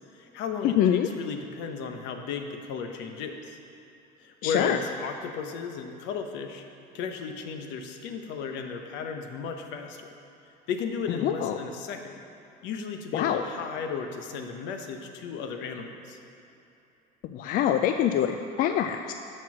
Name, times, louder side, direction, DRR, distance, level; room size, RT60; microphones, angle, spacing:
voice 1, 0.1-3.6 4.2-6.6 6.9-10.1 10.7-12.2 12.6-16.2, left 5 dB, 75° left, 5 dB, 0.9 m, -35 dB
voice 2, 0.6-1.1 4.4-4.8 11.1-11.6 13.1-13.4 17.2-19.1, left 10 dB, 50° left, 7 dB, 0.4 m, -25 dB
12.5 x 4.5 x 6.0 m, 2.8 s
cardioid pair, 145°, 19 cm